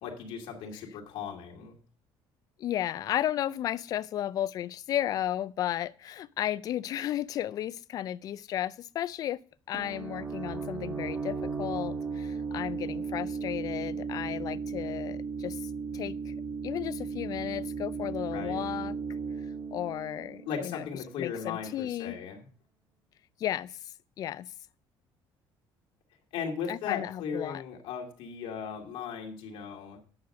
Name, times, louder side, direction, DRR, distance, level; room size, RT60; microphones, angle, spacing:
voice 1, 0.0-1.8 18.3-18.6 20.5-22.5 26.3-30.0, left 7 dB, 85° left, 2.3 m, -37 dB
voice 2, 2.6-9.4 9.7-16.3 16.6-19.0 19.7-20.8 21.2-22.2 23.4-23.8 24.2-24.5 26.7-27.6, left 12 dB, 45° left, 0.4 m, -34 dB
sound 1, 9.7-21.2, right 5 dB, 20° right, 1.6 m, -36 dB
9.5 x 6.6 x 6.5 m
cardioid pair, 170°, 9 cm